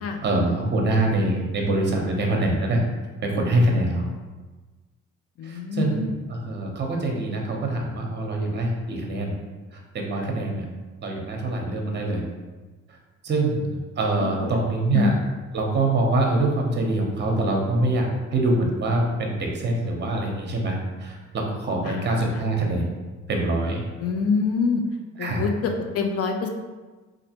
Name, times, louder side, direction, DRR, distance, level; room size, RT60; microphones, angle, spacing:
voice 1, 0.2-2.8 3.2-4.1 5.4-6.0 6.3-9.3 9.9-10.6 11.0-12.2 13.2-13.7 14.0-15.1 15.5-22.8 23.3-23.8 25.2-25.4, right 2 dB, 35° right, 0 dB, 0.7 m, -24 dB
voice 2, 5.4-6.2 14.2-14.7 14.9-15.1 21.8-22.4 24.0-24.8 25.2-26.5, left 5 dB, 55° left, 4 dB, 0.4 m, -26 dB
3.1 x 2.5 x 2.8 m, 1.3 s
cardioid pair, 90°, 30 cm